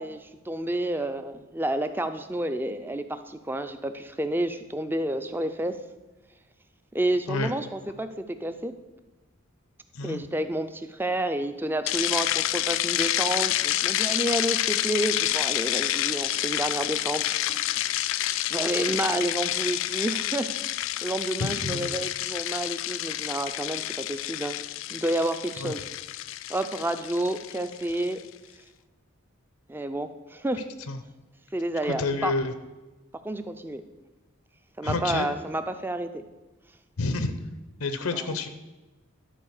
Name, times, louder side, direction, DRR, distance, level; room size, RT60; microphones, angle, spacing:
voice 1, 0.0-5.8 6.9-8.7 10.0-17.2 18.5-20.5 21.0-24.6 24.9-25.8 26.5-28.2 29.7-30.6 31.5-32.3 33.2-33.8 34.8-36.2 38.1-38.3, right 1 dB, 10° right, 9 dB, 0.4 m, -30 dB
sound 1, 11.9-28.1, left 14 dB, 60° left, 0.3 m, -29 dB
voice 2, 21.4-21.9 25.6-25.7 30.9-31.0 31.8-32.5 34.8-35.3 37.0-37.3 37.8-38.5, left 3 dB, 90° left, 10 dB, 0.8 m, -29 dB
11.5 x 4.6 x 6.5 m, 1.1 s
head